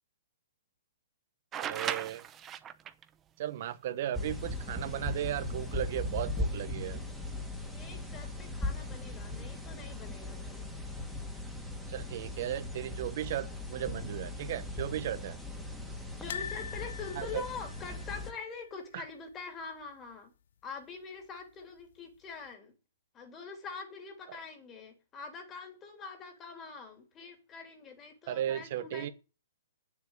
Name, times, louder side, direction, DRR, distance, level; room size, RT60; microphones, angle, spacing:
sound 1, 1.5-3.0 4.9-5.0 6.2-6.6, right 9 dB, 20° right, 0.8 m, -37 dB
voice 1, 1.6-2.2 3.4-7.0 11.9-15.4 17.2-17.4 18.9-19.0 28.3-29.1, right 11 dB, 50° right, 1.0 m, -36 dB
sound 2, 4.1-18.3, left 2 dB, ahead, 2.1 m, -38 dB
voice 2, 7.7-10.7 16.2-20.3 20.6-22.7 23.1-29.1, left 5 dB, 20° left, 3.2 m, -44 dB
sound 3, 16.3-19.3 19.6-19.8 20.1-20.2 21.4-21.9 22.5-22.6, left 7 dB, 65° left, 0.9 m, -44 dB
9.1 x 7.3 x 8.2 m
hypercardioid pair, 150°, 0 cm